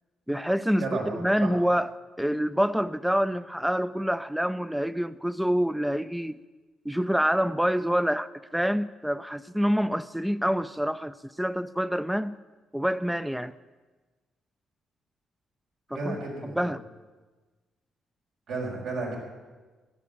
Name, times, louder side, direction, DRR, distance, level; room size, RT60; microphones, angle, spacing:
voice 1, 0.3-0.9 1.2-6.4 6.9-12.4 12.7-13.5 15.9-16.2 16.4-16.8, equal, 5° right, 14 dB, 0.4 m, -27 dB
voice 2, 0.8-1.5 15.9-16.6 18.5-19.2, right 3 dB, 85° right, -2 dB, 5.1 m, -32 dB
13.5 x 10.5 x 8.5 m, 1.3 s
cardioid pair, 90°, 0 cm